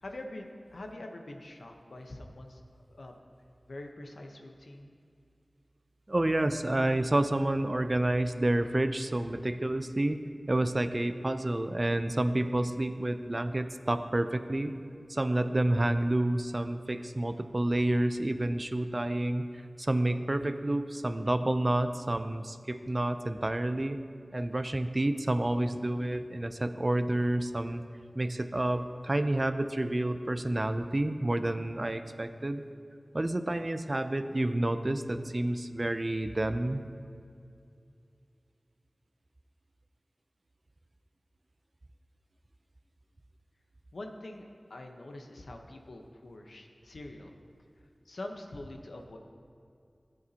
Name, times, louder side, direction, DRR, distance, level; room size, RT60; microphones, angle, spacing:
voice 1, 0.0-2.6 2.9-3.1 3.7-4.9 43.9-47.3 48.0-49.2, left 1 dB, 80° left, 3 dB, 0.9 m, -44 dB
voice 2, 6.1-10.2 10.5-14.7 15.1-19.5 19.8-24.0 24.3-27.8 28.1-32.6 33.1-36.8, right 1 dB, 35° right, 10 dB, 0.5 m, -29 dB
17.0 x 8.4 x 2.9 m, 2.4 s
wide cardioid pair, 65°, 0 cm